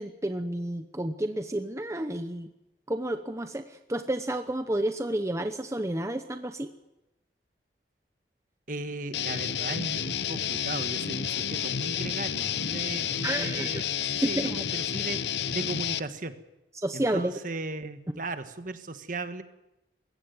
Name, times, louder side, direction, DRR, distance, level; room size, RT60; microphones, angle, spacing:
voice 1, 0.0-2.5 2.9-6.7 13.2-13.9 14.2-14.6 16.7-17.4, right 1 dB, 15° right, 8 dB, 0.9 m, -31 dB
voice 2, 8.7-15.2 15.5-16.4 16.9-19.4, right 2 dB, 50° right, 9 dB, 1.5 m, -36 dB
Guitar, 9.1-16.0, left 9 dB, 75° left, 0.8 m, -30 dB
21.5 x 16.5 x 9.5 m, 0.95 s
head